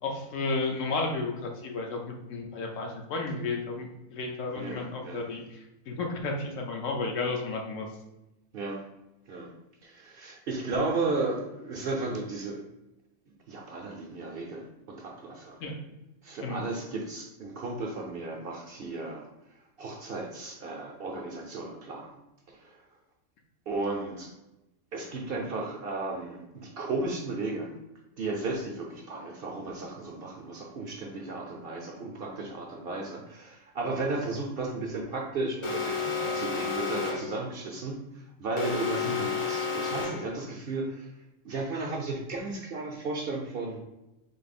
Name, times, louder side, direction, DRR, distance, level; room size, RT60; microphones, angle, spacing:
voice 1, 0.0-7.9 15.6-15.8 16.4-16.6 39.0-39.2, left 3 dB, 70° left, 1 dB, 1.1 m, -33 dB
voice 2, 4.5-5.4 8.5-8.8 9.3-9.5 9.8-12.6 13.5-15.6 16.2-19.2 19.8-22.2 22.5-22.8 23.7-24.3 24.9-27.8 28.2-41.1 41.4-43.8, right 3 dB, 55° right, 0 dB, 0.7 m, -34 dB
Alarm, 35.6-37.4 38.6-40.4, left 4 dB, 35° left, 0.5 m, -31 dB
3.9 x 2.9 x 4.1 m, 0.96 s
omnidirectional pair, 1.4 m